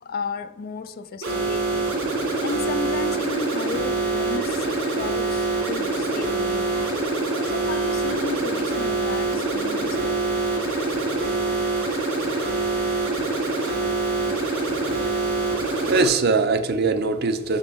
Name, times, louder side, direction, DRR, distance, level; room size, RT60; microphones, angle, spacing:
voice 1, 0.0-1.9 2.4-7.0 7.4-10.2, left 4 dB, 45° left, 0.4 m, -34 dB
sound 1, 1.2-16.1, right 3 dB, 65° right, 2.4 m, -25 dB
sound 2, 2.2-9.0, equal, 65° left, 1.7 m, -45 dB
sound 3, 3.2-15.6, left 2 dB, 5° left, 0.8 m, -47 dB
voice 2, 15.1-17.6, right 4 dB, 50° right, 0.5 m, -23 dB
6.2 x 5.2 x 4.2 m
head